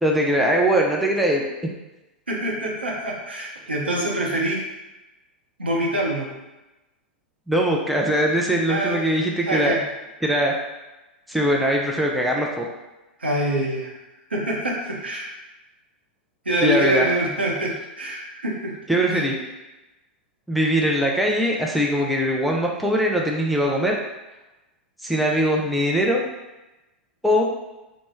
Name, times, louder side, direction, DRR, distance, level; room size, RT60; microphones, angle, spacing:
voice 1, 0.0-1.4 7.5-9.7 10.2-10.5 11.3-12.7 16.6-17.1 18.9-19.3 20.5-24.0 25.0-26.2 27.2-27.4, equal, ahead, -1 dB, 0.4 m, -21 dB
voice 2, 2.3-4.6 5.6-6.3 8.7-9.0 9.5-9.8 13.2-13.9 14.3-15.3 16.4-18.7 19.1-19.2, right 1 dB, 80° right, -2 dB, 0.7 m, -25 dB
3.0 x 2.0 x 3.3 m, 1.0 s
figure-of-eight pair, 95°, 6 cm